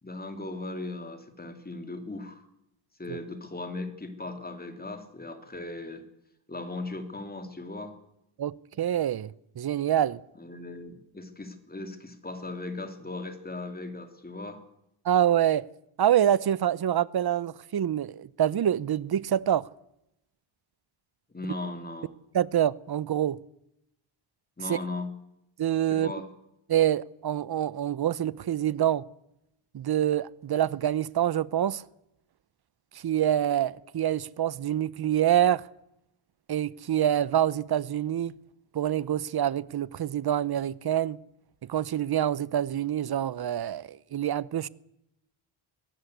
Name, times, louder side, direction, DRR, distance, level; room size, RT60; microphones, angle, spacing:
voice 1, 0.0-2.4 3.0-6.0 6.5-7.9 10.3-14.6 21.3-22.1 24.6-25.1 25.9-26.3, left 2 dB, 20° left, 2.9 m, -38 dB
voice 2, 8.4-10.2 15.0-15.7 16.0-19.7 22.3-23.4 24.7-24.8 25.6-26.1 26.7-29.0 29.7-31.8 33.0-35.6 36.5-38.3 38.7-41.2 41.7-44.7, right 10 dB, 50° right, 0.8 m, -26 dB
23.0 x 18.0 x 8.1 m
wide cardioid pair, 125°, 49 cm